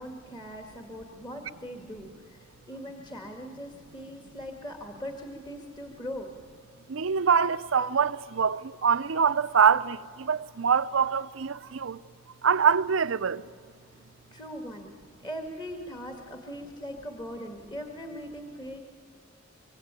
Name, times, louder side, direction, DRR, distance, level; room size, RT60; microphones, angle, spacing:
voice 1, 0.0-6.3 14.3-18.8, equal, 20° left, 2.0 m, -40 dB
voice 2, 6.9-12.0 12.4-13.5, right 6 dB, 75° right, 0.6 m, -24 dB
24.5 x 24.5 x 9.0 m
head